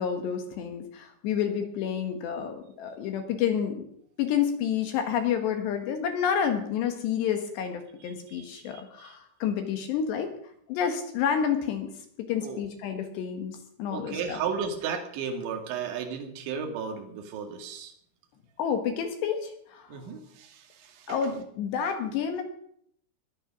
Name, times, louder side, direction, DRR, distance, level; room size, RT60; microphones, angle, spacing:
voice 1, 0.0-3.8 4.2-10.3 10.7-11.9 12.3-14.4 18.6-20.0 21.1-22.4, left 8 dB, 70° left, 6 dB, 3.1 m, -29 dB
voice 2, 8.7-9.1 12.4-12.6 13.9-17.9 19.9-21.3, right 6 dB, 70° right, 4 dB, 4.3 m, -34 dB
21.0 x 10.0 x 6.1 m, 0.68 s
omnidirectional pair, 5.8 m